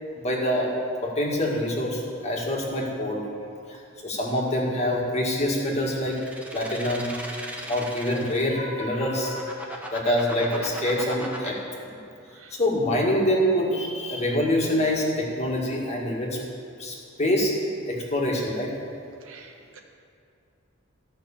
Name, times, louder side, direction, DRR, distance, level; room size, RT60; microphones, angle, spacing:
voice 1, 0.2-0.7 1.0-3.3 3.7-6.2 6.5-7.1 7.6-9.5 9.9-11.6 11.9-12.0 12.6-16.4 16.8-17.5 17.9-18.7, left 1 dB, 30° left, -2 dB, 1.9 m, -25 dB
sound 1, 6.0-8.5 9.0-11.5, right 1 dB, 5° right, 1.2 m, -37 dB
voice 2, 19.2-19.8, right 5 dB, 70° right, 2 dB, 1.3 m, -49 dB
14.0 x 5.9 x 7.2 m, 2.5 s
head